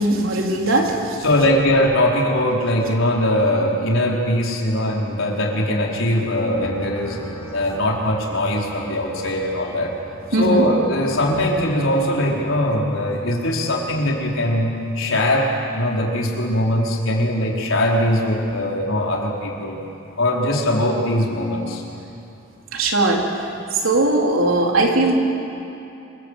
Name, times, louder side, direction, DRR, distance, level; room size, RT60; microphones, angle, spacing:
voice 1, 0.0-1.2 10.3-10.7 22.7-25.1, right 2 dB, 90° right, 0 dB, 4.0 m, -19 dB
voice 2, 1.2-7.2 7.5-9.9 10.4-19.8 20.2-21.8, left 1 dB, 80° left, -2 dB, 4.8 m, -21 dB
sound 1, 6.6-12.4, right 1 dB, 20° left, 3.3 m, -39 dB
27.5 x 23.0 x 8.4 m, 2.9 s
head